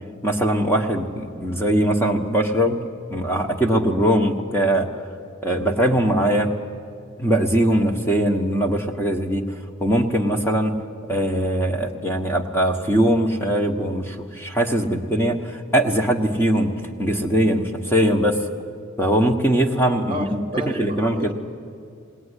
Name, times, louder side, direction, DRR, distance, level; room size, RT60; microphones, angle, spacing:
voice 1, 0.2-2.8 3.1-4.9 5.4-6.5 7.2-9.4 9.8-10.8 11.1-16.7 17.0-18.4 19.0-21.3, right 1 dB, 10° left, 3 dB, 1.2 m, -21 dB
voice 2, 20.1-21.3, equal, 25° right, 1 dB, 0.9 m, -31 dB
20.0 x 18.5 x 9.9 m, 2.3 s
head